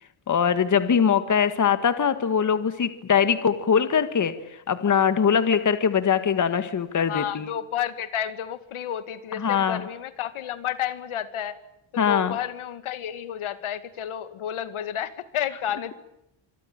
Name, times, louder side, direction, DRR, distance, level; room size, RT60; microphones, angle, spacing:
voice 1, 0.3-4.3 4.7-7.5 9.4-9.8 12.0-12.4, left 7 dB, 40° left, 11 dB, 1.8 m, -22 dB
voice 2, 7.1-11.6 11.9-15.9, left 10 dB, 75° left, 13 dB, 2.3 m, -31 dB
26.5 x 23.5 x 8.8 m, 0.81 s
wide cardioid pair, 150°, 49 cm